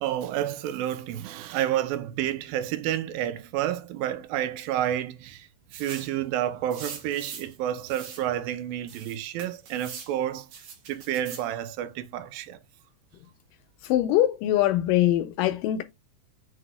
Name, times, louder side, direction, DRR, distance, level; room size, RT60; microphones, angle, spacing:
voice 1, 0.0-5.5 5.7-10.5 10.9-12.6, right 11 dB, 85° right, 2.5 m, -30 dB
sound 1, 5.7-6.2 6.7-7.5 7.9-8.2 8.9-10.1 10.5-11.5, right 6 dB, 60° right, 3.1 m, -42 dB
voice 2, 13.8-15.8, left 13 dB, 80° left, 2.0 m, -23 dB
7.9 x 3.6 x 3.5 m
omnidirectional pair, 4.2 m